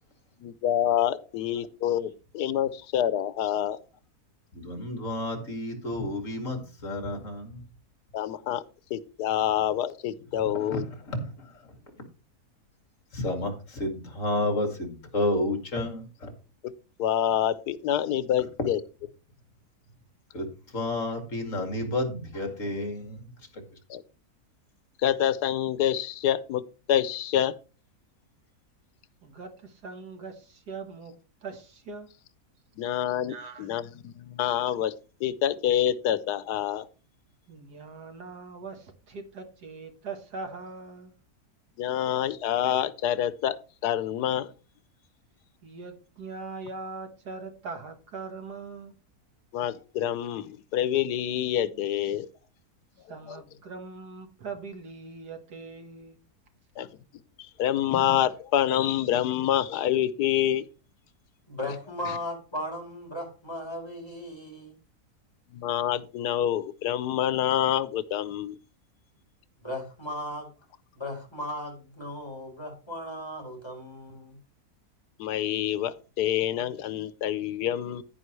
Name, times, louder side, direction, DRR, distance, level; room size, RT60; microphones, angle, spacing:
voice 1, 0.4-2.1 2.3-3.8 8.1-8.6 8.9-10.8 17.0-18.8 23.9-24.0 25.0-26.6 26.9-27.5 32.8-34.9 35.2-36.9 41.8-43.6 43.8-44.5 49.5-52.3 53.3-53.4 56.8-56.9 57.6-60.7 65.5-68.5 75.2-78.0, left 11 dB, 90° left, 15 dB, 1.3 m, -27 dB
voice 2, 4.5-7.6 10.6-11.6 13.1-16.3 20.3-20.5 20.7-23.6, left 1 dB, 50° left, 5 dB, 2.6 m, -31 dB
voice 3, 29.2-31.1 31.4-32.1 33.3-33.7 37.5-41.1 45.6-48.9 53.1-56.2, right 4 dB, 85° right, 6 dB, 2.1 m, -41 dB
voice 4, 61.5-64.8 69.6-70.5 70.9-74.4, left 1 dB, 15° left, 0 dB, 4.0 m, -36 dB
10.5 x 9.9 x 3.2 m, 0.34 s
omnidirectional pair, 1.7 m